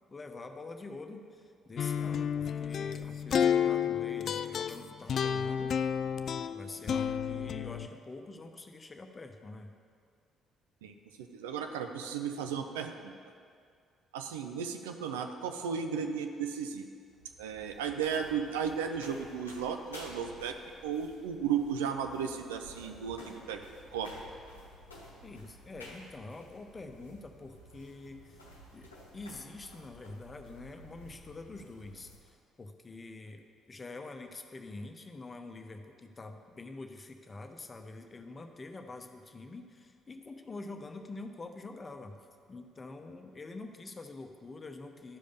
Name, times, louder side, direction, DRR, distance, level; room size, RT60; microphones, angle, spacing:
voice 1, 0.1-5.7 6.5-9.7 25.2-28.4 28.7-33.4 33.7-42.2 42.5-45.2, left 3 dB, 30° left, 5 dB, 0.9 m, -46 dB
sound 1, 1.8-7.9, left 8 dB, 55° left, 0.3 m, -31 dB
voice 2, 10.8-13.1 14.1-16.9 17.4-20.5 20.8-23.6 23.9-24.1, right 7 dB, 80° right, 6 dB, 0.5 m, -35 dB
sound 2, 17.1-32.3, left 1 dB, 90° left, 0.9 m, -53 dB
12.0 x 5.1 x 5.3 m, 2.2 s
figure-of-eight pair, 45°, 0 cm